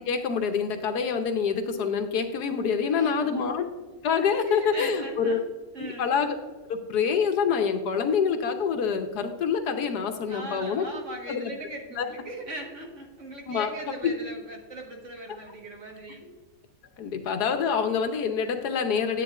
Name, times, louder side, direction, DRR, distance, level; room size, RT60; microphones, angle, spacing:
voice 1, 0.0-3.6 4.0-5.4 6.0-6.4 6.7-10.9 11.3-11.5 12.0-12.1 13.5-13.7 14.0-14.1 17.0-19.2, left 6 dB, 80° left, 7 dB, 1.4 m, -26 dB
voice 2, 2.9-3.5 4.4-5.4 5.7-6.2 10.3-16.3, right 1 dB, 50° right, 1 dB, 1.7 m, -40 dB
10.0 x 9.0 x 2.4 m, 1.2 s
omnidirectional pair, 1.7 m